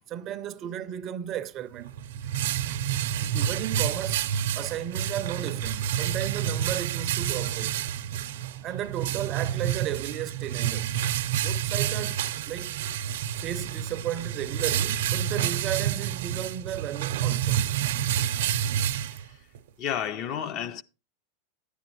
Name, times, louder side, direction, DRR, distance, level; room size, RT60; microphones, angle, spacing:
voice 1, 0.1-1.9 2.7-2.8 3.2-7.8 8.6-11.0 11.4-12.8 13.4-17.7, right 10 dB, 25° right, 0.4 m, -34 dB
sound 1, 1.7-19.6, right 10 dB, 70° right, 0.6 m, -29 dB
voice 2, 19.8-20.8, left 9 dB, 30° left, 0.4 m, -31 dB
10.0 x 9.8 x 3.0 m
supercardioid pair, 170°, 0 cm